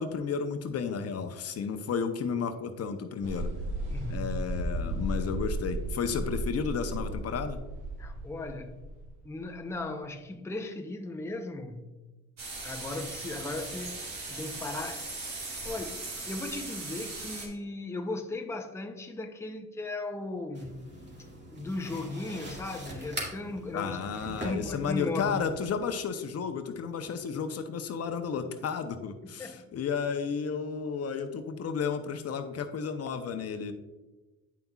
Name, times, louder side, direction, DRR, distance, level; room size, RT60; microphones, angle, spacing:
voice 1, 0.0-3.5 4.1-7.6 23.7-33.7, left 6 dB, 55° left, 0.7 m, -32 dB
sound 1, 3.2-9.9, right 1 dB, 80° right, 1.1 m, -34 dB
voice 2, 3.9-4.4 8.0-8.9 9.2-11.9 12.6-15.1 15.6-20.8 21.5-24.0 24.4-25.4 29.4-29.7, left 2 dB, 10° left, 0.6 m, -37 dB
sound 2, 12.4-17.5, right 3 dB, 60° right, 2.0 m, -39 dB
sound 3, 20.5-25.7, right 1 dB, 35° right, 2.1 m, -42 dB
9.3 x 5.5 x 2.3 m
cardioid pair, 90°, 30 cm